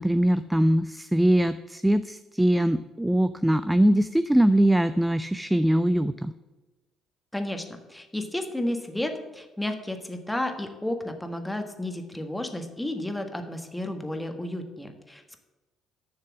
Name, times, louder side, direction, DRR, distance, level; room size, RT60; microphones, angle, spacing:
voice 1, 0.0-6.3, right 1 dB, 5° right, 12 dB, 0.4 m, -22 dB
voice 2, 7.3-15.4, left 1 dB, 10° left, 5 dB, 1.5 m, -32 dB
7.0 x 6.6 x 7.3 m, 1.1 s
hypercardioid pair, 50°, 0 cm